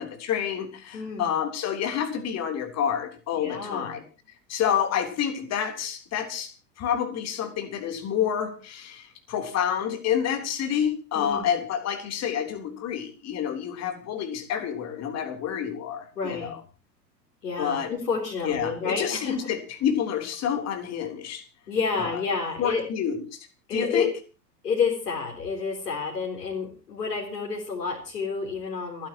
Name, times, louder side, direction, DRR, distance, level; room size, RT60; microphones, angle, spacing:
voice 1, 0.0-4.0 4.5-16.6 17.6-17.9 18.4-21.4 22.0-22.2 22.6-24.1, left 8 dB, 30° left, 6 dB, 3.4 m, -28 dB
voice 2, 0.9-1.3 3.4-4.0 11.1-11.5 16.2-16.5 17.4-19.4 21.7-22.8 23.7-24.1 24.6-29.1, left 5 dB, 70° left, -1 dB, 4.2 m, -29 dB
30.0 x 10.5 x 3.0 m, 0.33 s
figure-of-eight pair, 95°, 50 cm